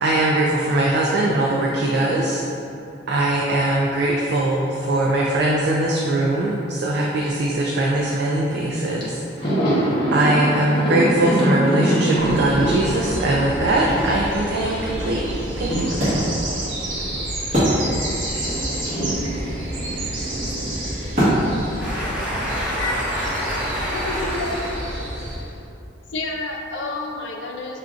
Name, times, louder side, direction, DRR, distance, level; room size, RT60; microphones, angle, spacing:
voice 1, 0.0-2.4 3.1-9.5 10.1-15.2 15.6-16.3, right 1 dB, 60° right, -3 dB, 0.3 m, -21 dB
Thunder, 8.6-8.7 9.0-17.8 18.1-22.4 22.6-22.8 24.0-24.7, right 1 dB, 25° left, 0.7 m, -26 dB
sound 1, 12.2-25.4, right 1 dB, 90° right, 0.9 m, -30 dB
Wood, 13.9-18.3 18.6-18.7 18.9-23.2, equal, 40° right, 1.3 m, -26 dB
voice 2, 21.8-24.7, equal, 5° right, -10 dB, 0.9 m, -27 dB
voice 3, 23.9-24.8 26.1-27.8, left 2 dB, 70° left, 0 dB, 0.5 m, -29 dB
5.8 x 2.5 x 2.4 m, 2.8 s
head